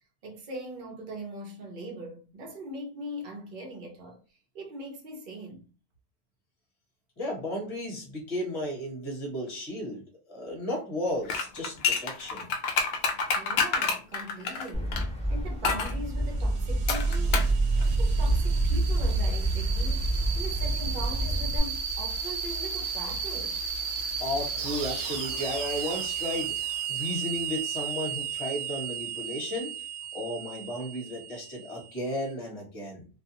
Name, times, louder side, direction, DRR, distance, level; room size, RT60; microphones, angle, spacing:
voice 1, 0.2-4.2 4.5-5.6 13.3-15.0 15.3-17.4 18.0-23.6 31.8-31.9, right 1 dB, 50° right, 0.9 m, -41 dB
voice 2, 7.2-10.0 10.3-12.5 24.2-26.5 26.9-29.7 30.1-33.1, left 1 dB, 35° left, 1.1 m, -34 dB
sound 1, 11.3-15.1 15.6-15.9 16.9-17.6 17.8-17.9, left 5 dB, 65° left, 0.7 m, -28 dB
sound 2, 14.7-21.6, equal, 5° left, 0.6 m, -30 dB
sound 3, 15.9-32.1, right 4 dB, 85° right, 0.9 m, -31 dB
2.4 x 2.2 x 2.8 m
omnidirectional pair, 1.2 m